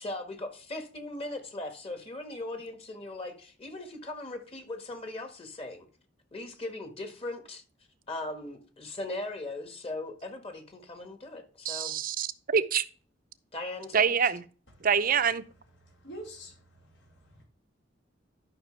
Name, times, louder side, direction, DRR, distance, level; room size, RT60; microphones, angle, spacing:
voice 1, 0.0-5.9 6.3-7.6 8.1-12.0 13.5-14.1, left 2 dB, 30° left, 1.7 m, -39 dB
voice 2, 11.6-12.8 13.9-14.4 14.8-15.4, right 7 dB, 50° right, 0.7 m, -26 dB
voice 3, 15.8-17.4, equal, 80° left, 4.6 m, -47 dB
12.5 x 5.9 x 3.3 m
head